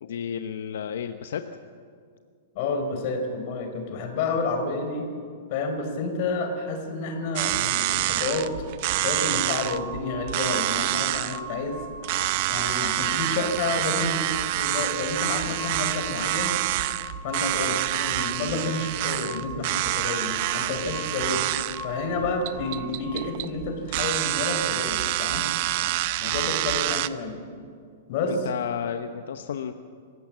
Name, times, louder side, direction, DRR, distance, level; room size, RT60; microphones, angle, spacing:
voice 1, 0.0-1.4 28.2-29.7, left 8 dB, 75° left, 8 dB, 0.9 m, -32 dB
voice 2, 2.5-5.1 5.5-8.5 8.9-11.8 12.5-14.3 14.5-16.6 17.2-21.4 21.8-25.5 26.2-27.4 28.1-28.5, left 3 dB, 45° left, 5 dB, 4.2 m, -30 dB
sound 1, 7.4-27.1, right 16 dB, 45° right, 0.7 m, -27 dB
sound 2, 9.1-23.3, right 2 dB, 5° left, 5.9 m, -40 dB
27.0 x 16.0 x 7.5 m, 2.2 s
hypercardioid pair, 160°, 0 cm